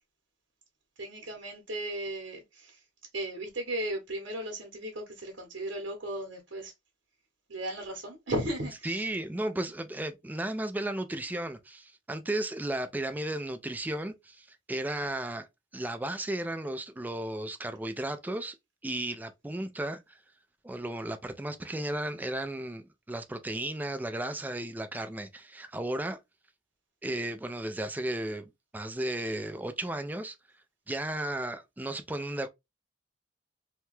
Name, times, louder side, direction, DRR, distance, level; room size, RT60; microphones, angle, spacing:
voice 1, 1.0-2.8 3.1-6.7 7.5-9.1, right 1 dB, 70° right, 0.9 m, -36 dB
voice 2, 8.8-15.5 15.7-18.6 18.8-20.2 20.6-26.2 27.0-30.4 30.9-32.5, right 1 dB, 10° right, 0.3 m, -34 dB
2.8 x 2.2 x 3.0 m
head